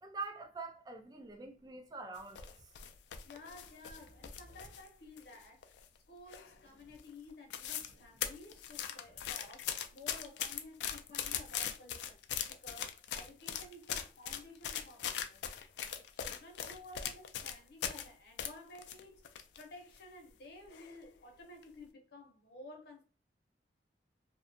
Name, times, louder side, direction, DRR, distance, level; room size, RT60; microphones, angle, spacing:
voice 1, 0.0-2.7, right 3 dB, 20° right, 0.4 m, -45 dB
sound 1, 1.3-2.0 2.9-4.8 6.4-7.0 7.5-8.2 8.6-9.3, right 1 dB, 90° right, 0.7 m, -64 dB
sound 2, 2.2-4.9 5.2-6.0 6.3-6.7 7.0-7.1 7.3-7.9 8.2-18.1 18.4-19.6 20.0-20.1 20.7-21.0 21.4-21.6, left 9 dB, 80° left, 0.3 m, -40 dB
voice 2, 3.3-15.4 15.8-23.0, left 2 dB, 65° left, 0.7 m, -54 dB
2.6 x 2.2 x 2.6 m
head